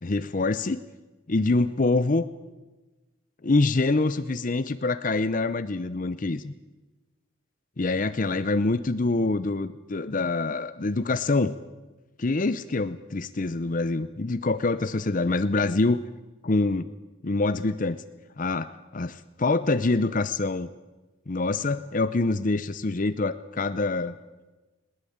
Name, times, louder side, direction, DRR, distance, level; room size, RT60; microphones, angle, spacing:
voice 1, 0.0-0.8 1.3-2.3 3.4-6.5 7.8-11.5 12.2-16.0 16.4-16.9 17.2-18.0 18.4-20.7 21.3-24.1, left 3 dB, 40° left, 13 dB, 0.7 m, -25 dB
21.0 x 19.0 x 8.8 m, 1.2 s
head